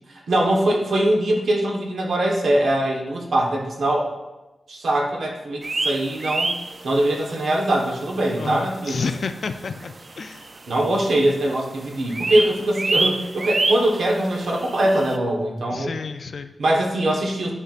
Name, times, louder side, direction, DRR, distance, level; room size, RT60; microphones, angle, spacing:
voice 1, 0.1-4.1 4.7-6.5 6.8-9.0 10.7-15.9 16.6-17.5, right 1 dB, 85° right, 0 dB, 1.2 m, -22 dB
sound 1, 5.6-7.3 7.7-7.8 8.3-8.4 9.1-9.2 9.4-9.5 9.7-10.9 11.2-11.5 11.8-15.2, right 2 dB, 40° right, 0.4 m, -27 dB
voice 2, 8.4-10.5 15.7-16.5, left 5 dB, 65° left, 9 dB, 0.4 m, -30 dB
11.0 x 4.4 x 2.5 m, 1.0 s
wide cardioid pair, 130°, 0 cm